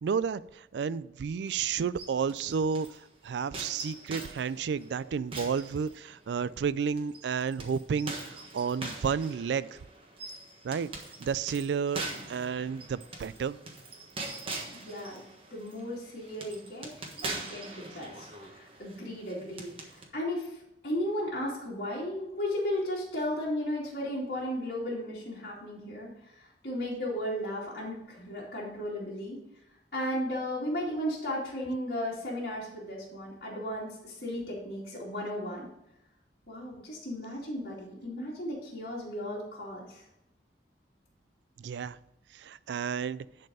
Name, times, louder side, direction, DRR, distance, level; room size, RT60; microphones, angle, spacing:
voice 1, 0.0-3.0 3.2-9.8 10.6-10.9 11.2-13.6 41.6-42.0 42.3-43.2, right 6 dB, 80° right, 18 dB, 0.3 m, -31 dB
sound 1, 1.4-3.0 3.5-6.4 7.0-20.0, right 2 dB, 30° right, 1.4 m, -43 dB
voice 2, 14.7-29.4 29.9-35.7 36.5-40.0, left 1 dB, 55° left, -7 dB, 2.7 m, -35 dB
10.5 x 4.4 x 4.9 m, 0.86 s
head